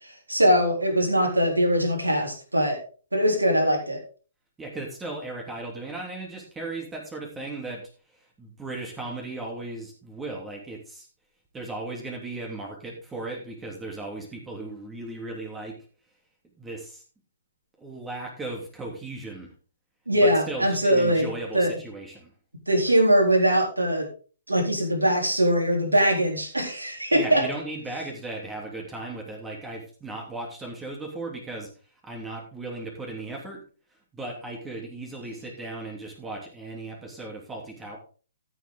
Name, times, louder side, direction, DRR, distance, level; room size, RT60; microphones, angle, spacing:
voice 1, 0.3-2.8 3.1-4.0 20.1-21.7 22.7-24.1 24.5-27.4, equal, 85° right, 0 dB, 4.0 m, -22 dB
voice 2, 4.6-7.8 8.4-11.1 11.5-15.7 16.6-17.0 17.8-19.5 20.2-22.3 27.1-31.7 32.0-33.6 34.1-38.0, right 2 dB, 10° right, 0 dB, 3.1 m, -36 dB
14.0 x 7.7 x 3.7 m, 0.37 s
figure-of-eight pair, 125°, 0 cm